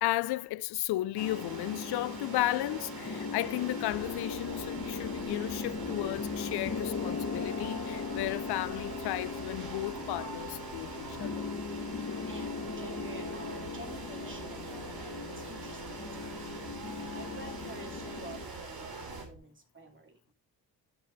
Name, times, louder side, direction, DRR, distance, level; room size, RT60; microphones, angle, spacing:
voice 1, 0.0-11.5, left 16 dB, 65° left, 0.5 m, -34 dB
sound 1, 1.2-18.5, left 5 dB, 35° left, 1.3 m, -39 dB
sound 2, 1.2-19.3, right 3 dB, 60° right, 3.3 m, -44 dB
sound 3, 3.9-19.4, right 3 dB, 90° right, 1.9 m, -51 dB
voice 2, 12.3-14.7 15.4-16.0 17.1-20.3, right 2 dB, 30° right, 2.7 m, -49 dB
12.0 x 6.4 x 2.7 m
supercardioid pair, 55°, 42 cm